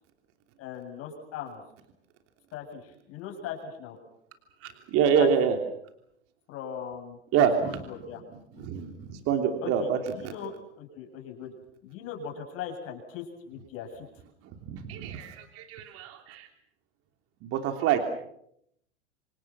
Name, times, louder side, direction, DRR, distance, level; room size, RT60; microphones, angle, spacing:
voice 1, 0.6-1.6 2.5-4.0 5.2-5.3 6.5-7.2 7.6-8.2 8.5-8.9 9.6-11.5 11.8-14.1, left 8 dB, 40° left, 2 dB, 7.6 m, -39 dB
voice 2, 4.9-5.5 7.3-7.8 8.6-10.0 10.2-10.3 14.6-16.5 17.4-18.0, right 8 dB, 40° right, 5 dB, 3.1 m, -26 dB
27.0 x 27.0 x 6.1 m, 0.73 s
hypercardioid pair, 100°, 35 cm